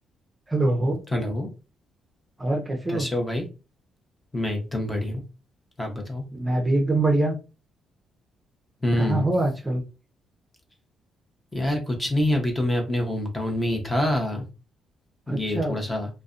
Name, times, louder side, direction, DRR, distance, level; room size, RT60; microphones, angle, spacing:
voice 1, 0.5-1.0 2.4-3.1 6.3-7.3 9.0-9.8 15.3-15.7, right 2 dB, 15° right, 1 dB, 0.6 m, -24 dB
voice 2, 1.1-1.5 2.9-3.5 4.3-5.2 5.8-6.2 8.8-9.3 11.5-14.5 15.3-16.1, left 1 dB, 15° left, 3 dB, 0.7 m, -26 dB
2.5 x 2.0 x 2.4 m, 0.30 s
cardioid pair, 90°, 0 cm